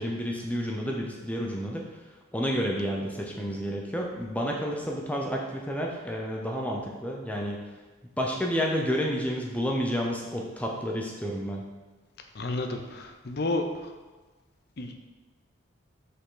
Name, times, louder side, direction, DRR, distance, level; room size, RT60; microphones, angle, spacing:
voice 1, 0.0-1.8 2.3-7.6 8.2-11.7, equal, 5° left, 0 dB, 0.6 m, -30 dB
voice 2, 12.3-13.6 14.8-14.9, left 2 dB, 50° left, 5 dB, 0.6 m, -31 dB
6.3 x 5.5 x 3.8 m, 1.3 s
head